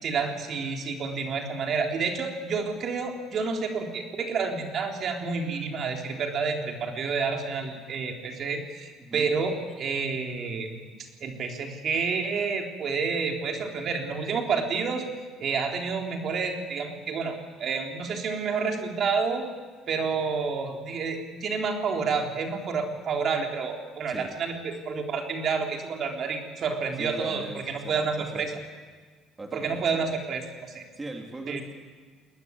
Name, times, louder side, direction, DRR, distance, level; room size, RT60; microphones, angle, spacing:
voice 1, 0.0-10.8 11.2-15.0 15.4-17.3 17.6-19.4 19.9-28.5 29.5-30.8 31.5-31.6, right 5 dB, 50° right, 2 dB, 3.9 m, -29 dB
voice 2, 9.0-9.4 24.1-24.3 27.0-28.5 29.4-30.1 30.9-31.8, right 2 dB, 20° right, 2 dB, 3.3 m, -39 dB
21.0 x 19.0 x 9.7 m, 1.5 s
supercardioid pair, 85°, 0 cm